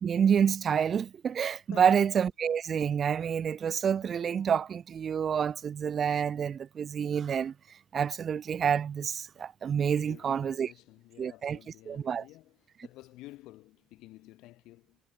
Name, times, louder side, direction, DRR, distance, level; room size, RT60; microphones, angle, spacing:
voice 1, 0.0-7.5 7.9-10.7 11.2-11.6 11.9-12.3, right 7 dB, 50° right, 0.6 m, -28 dB
voice 2, 1.7-2.1 10.0-12.6 12.8-15.0, left 18 dB, 75° left, 4.5 m, -51 dB
hypercardioid pair, 55°, 0 cm